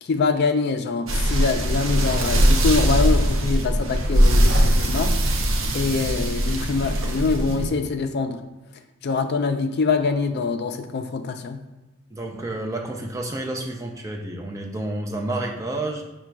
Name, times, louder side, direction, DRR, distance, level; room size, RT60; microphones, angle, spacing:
voice 1, 0.0-5.1 5.7-8.4 9.0-11.6, left 4 dB, 50° left, 8 dB, 0.4 m, -24 dB
sound 1, 1.1-7.7, equal, 70° right, 0.6 m, -20 dB
voice 2, 12.1-16.0, right 2 dB, 15° right, 2 dB, 0.4 m, -30 dB
4.9 x 2.2 x 4.5 m, 1.1 s
head